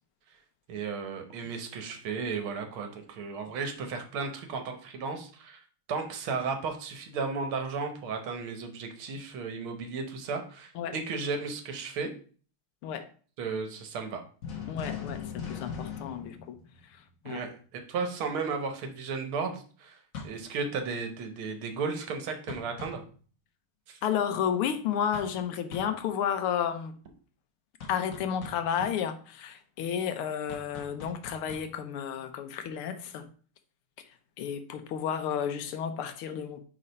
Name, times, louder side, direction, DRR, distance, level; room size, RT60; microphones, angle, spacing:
voice 1, 0.7-12.1 13.4-14.2 17.3-23.0 23.9-24.0, right 4 dB, 70° right, 1.8 m, -34 dB
sound 1, 14.4-17.2 20.1-20.5 22.5-23.1 25.1-25.4 25.7-26.0 27.8-28.7 30.5-31.8, left 6 dB, 45° left, 1.4 m, -41 dB
voice 2, 14.7-16.5 16.9-17.4 24.0-27.0 27.9-33.3 34.4-36.6, left 8 dB, 85° left, 1.6 m, -32 dB
4.9 x 4.4 x 5.3 m
omnidirectional pair, 2.4 m